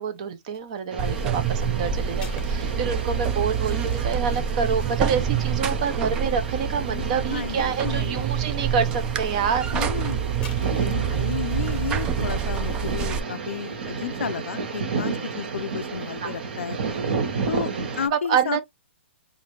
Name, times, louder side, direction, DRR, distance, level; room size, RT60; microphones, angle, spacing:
voice 1, 0.0-9.9 16.2-16.3 18.1-18.6, right 6 dB, 30° right, 0.8 m, -27 dB
sound 1, 0.5-0.8 2.1-6.9 7.5-8.1 8.5-8.6 10.3-11.6 12.0-13.1, left 5 dB, 15° left, 0.9 m, -49 dB
sound 2, 0.9-18.1, right 5 dB, 50° right, 1.4 m, -32 dB
Buzz, 1.0-13.2, right 7 dB, 10° right, 0.3 m, -27 dB
voice 2, 7.3-8.3 9.7-10.2 10.8-17.0 17.5-18.6, left 8 dB, 75° left, 0.4 m, -32 dB
5.4 x 2.6 x 3.2 m
hypercardioid pair, 170°, 7 cm